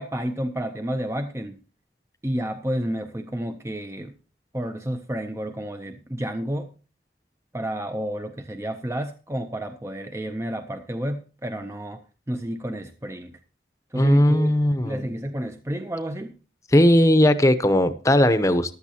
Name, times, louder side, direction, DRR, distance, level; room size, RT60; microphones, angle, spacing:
voice 1, 0.0-1.6 2.2-4.2 4.5-6.7 7.5-13.4 13.9-14.5 14.8-16.4, right 1 dB, 15° right, 0.6 m, -30 dB
voice 2, 14.0-15.1 16.7-18.7, left 1 dB, 20° left, 0.8 m, -18 dB
14.5 x 11.5 x 2.9 m
head